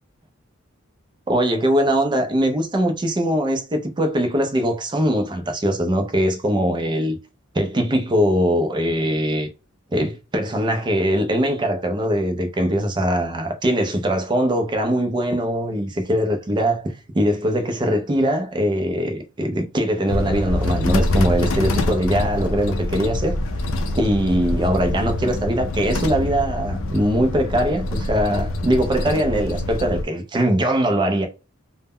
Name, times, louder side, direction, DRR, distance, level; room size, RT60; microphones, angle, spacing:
voice 1, 1.3-7.2 7.5-9.5 9.9-23.4 23.9-31.3, equal, 20° right, 0.4 m, -21 dB
sound 1, 20.1-30.0, left 1 dB, 70° left, 0.4 m, -25 dB
2.0 x 2.0 x 3.5 m
head